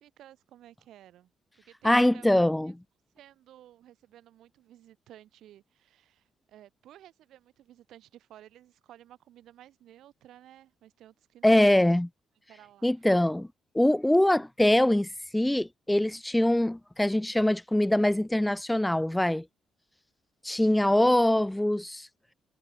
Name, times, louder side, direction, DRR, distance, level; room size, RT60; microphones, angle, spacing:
voice 1, 0.0-2.3 3.1-11.9 12.5-12.9, right 12 dB, 80° right, 7.9 m, -54 dB
voice 2, 1.8-2.8 11.4-12.1 12.8-13.5 13.7-19.4 20.4-22.1, left 1 dB, 5° left, 0.9 m, -23 dB
cardioid pair, 90°, 0 cm